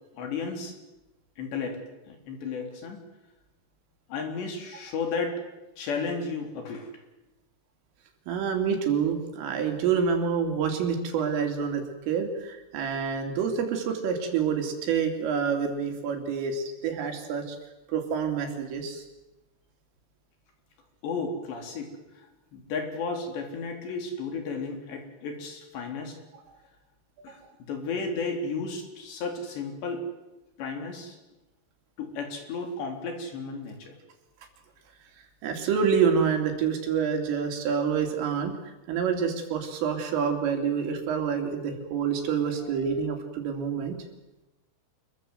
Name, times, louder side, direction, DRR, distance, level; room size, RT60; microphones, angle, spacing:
voice 1, 0.2-0.7 1.4-3.0 4.1-5.4 5.8-6.9 21.0-22.3 22.5-26.2 27.2-30.1 30.6-31.2 32.0-33.9, left 4 dB, 60° left, 4 dB, 5.6 m, -33 dB
voice 2, 8.3-17.6 17.9-19.0 27.3-27.4 35.4-38.5 38.9-44.0, right 6 dB, 75° right, 4 dB, 5.6 m, -27 dB
27.5 x 22.5 x 7.9 m, 1.0 s
omnidirectional pair, 5.8 m